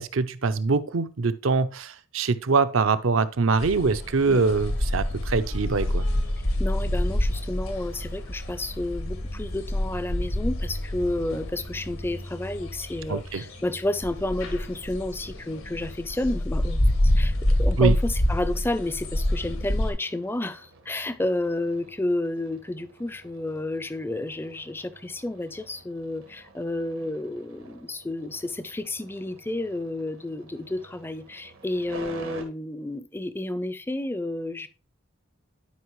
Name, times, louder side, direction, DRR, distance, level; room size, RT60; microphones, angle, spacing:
voice 1, 0.0-6.1 13.1-13.4 17.8-17.9, right 4 dB, 75° right, 0.6 m, -23 dB
sound 1, 3.6-19.9, left 1 dB, 90° left, 1.7 m, -27 dB
voice 2, 6.6-34.7, left 1 dB, 10° left, 0.4 m, -31 dB
sound 2, 19.7-32.4, right 2 dB, 90° right, 1.6 m, -48 dB
11.5 x 5.1 x 3.1 m
head